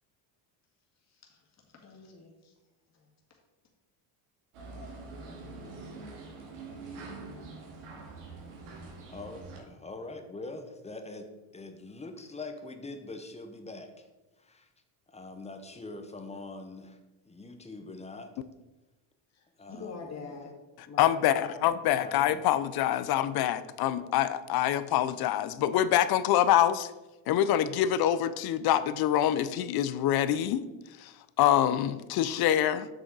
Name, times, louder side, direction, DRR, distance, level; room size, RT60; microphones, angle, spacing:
voice 1, 1.1-1.4 1.7-2.5 2.9-3.1 19.3-20.5 20.9-21.6, left 4 dB, 35° left, 0 dB, 2.0 m, -45 dB
sound 1, 4.5-9.6, right 3 dB, 85° right, 2.2 m, -44 dB
voice 2, 9.1-14.1 14.4-14.7 15.1-17.0 17.2-18.3 19.6-20.4 22.0-22.4 24.0-24.1, left 2 dB, 15° left, 6 dB, 0.8 m, -43 dB
voice 3, 21.0-26.9 27.3-30.7 31.0-32.9, left 11 dB, 50° left, 15 dB, 0.5 m, -25 dB
7.8 x 6.2 x 4.0 m, 1.1 s
cardioid pair, 115°, 47 cm